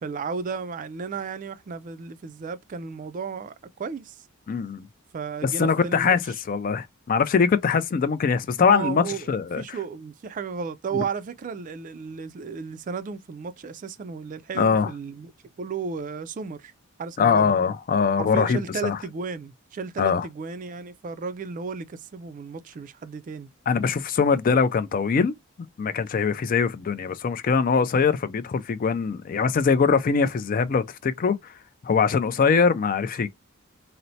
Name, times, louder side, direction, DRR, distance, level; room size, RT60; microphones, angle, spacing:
voice 1, 0.0-4.3 5.1-6.4 8.6-9.3 9.6-15.3 15.6-16.7 17.0-17.5 18.2-23.5, right 5 dB, 40° right, 0.3 m, -34 dB
voice 2, 4.5-4.9 5.4-6.2 6.5-9.8 10.9-11.0 14.6-14.9 17.2-19.0 20.0-20.3 23.7-25.3 25.8-31.5 31.8-33.3, left 5 dB, 40° left, 0.3 m, -22 dB
4.2 x 2.0 x 2.6 m
head